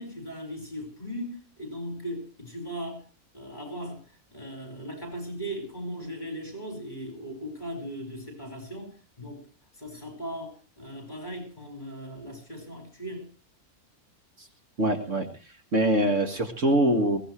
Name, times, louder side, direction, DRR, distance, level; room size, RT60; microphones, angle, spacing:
voice 1, 0.0-3.1 3.3-4.0 4.3-9.5 9.8-13.3, equal, 30° left, 5.5 m, -38 dB
voice 2, 14.8-15.3 15.7-17.2, right 1 dB, 55° right, 2.2 m, -23 dB
21.5 x 17.0 x 3.2 m
omnidirectional pair, 1.6 m